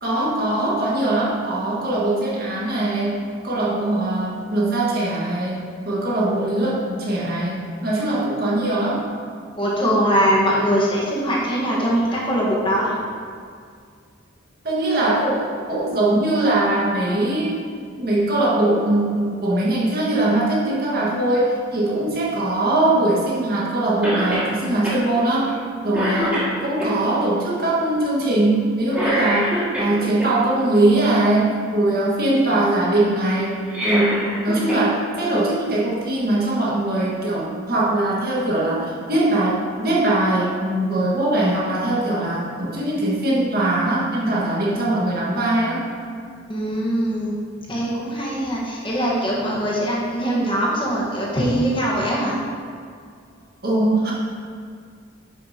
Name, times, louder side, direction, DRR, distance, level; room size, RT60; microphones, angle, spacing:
voice 1, 0.0-9.0 14.6-17.5 18.0-25.6 25.8-45.9 53.6-54.1, right 1 dB, 50° right, -5 dB, 1.6 m, -21 dB
voice 2, 9.6-12.9 46.5-47.4 47.7-52.4, equal, 25° left, -5 dB, 1.3 m, -21 dB
Cough, 24.0-24.5 24.8-25.0 25.5-25.7 25.9-26.9 28.9-30.3 33.5-34.9 35.2-35.3 36.4-36.5, equal, 5° right, 2.0 m, -25 dB
10.0 x 6.6 x 2.8 m, 2.1 s
head